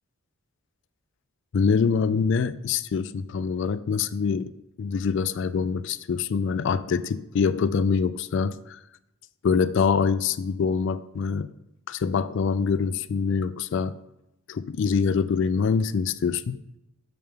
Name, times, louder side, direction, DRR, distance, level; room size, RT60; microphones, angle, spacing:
voice 1, 1.5-4.5 4.8-8.8 9.4-11.5 11.9-14.0 14.5-16.6, left 5 dB, 55° left, 14 dB, 0.3 m, -25 dB
8.8 x 6.8 x 3.5 m, 0.89 s
head